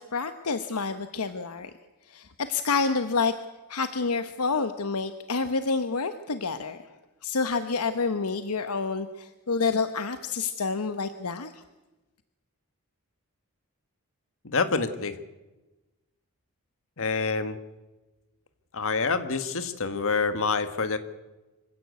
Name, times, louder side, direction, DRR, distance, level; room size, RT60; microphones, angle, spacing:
voice 1, 0.0-1.7 2.1-3.3 3.7-6.8 7.2-11.6, left 4 dB, 80° left, 10 dB, 1.0 m, -28 dB
voice 2, 14.4-15.1 17.0-17.6 18.7-21.0, left 4 dB, 65° left, 10 dB, 1.6 m, -27 dB
25.5 x 16.0 x 8.3 m, 1.1 s
head